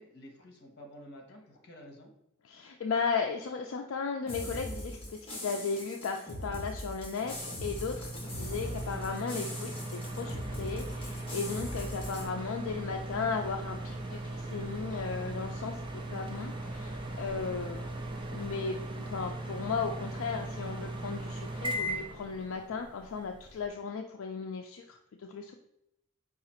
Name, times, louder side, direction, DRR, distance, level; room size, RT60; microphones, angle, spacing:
voice 1, 0.0-2.1 8.3-8.7, equal, 50° left, 2 dB, 0.9 m, -51 dB
voice 2, 2.5-17.8 18.3-25.5, left 5 dB, 70° left, 2 dB, 0.4 m, -36 dB
sound 1, 4.3-12.3, left 1 dB, 25° left, 1.0 m, -41 dB
sound 2, 7.2-23.7, right 1 dB, 20° right, 0.4 m, -39 dB
sound 3, 10.6-18.6, equal, 5° right, 1.2 m, -54 dB
4.8 x 2.4 x 4.2 m, 0.82 s
head